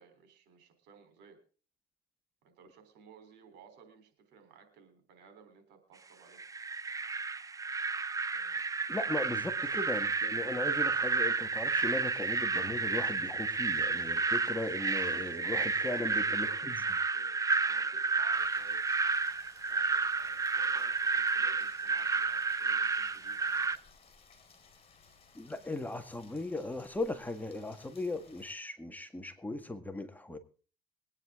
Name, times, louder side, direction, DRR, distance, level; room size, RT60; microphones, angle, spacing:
voice 1, 0.0-1.4 2.4-6.4 8.3-8.6 14.8-18.9 19.7-23.8, right 6 dB, 90° right, 8 dB, 3.8 m, -57 dB
sound 1, 6.4-23.8, right 4 dB, 20° right, 0.7 m, -31 dB
voice 2, 8.9-16.7 25.4-30.4, left 2 dB, 10° left, 7 dB, 1.8 m, -38 dB
Rain, 18.3-28.5, left 5 dB, 35° left, 4.5 m, -61 dB
22.5 x 9.8 x 3.7 m, 0.38 s
cardioid pair, 110°, 17 cm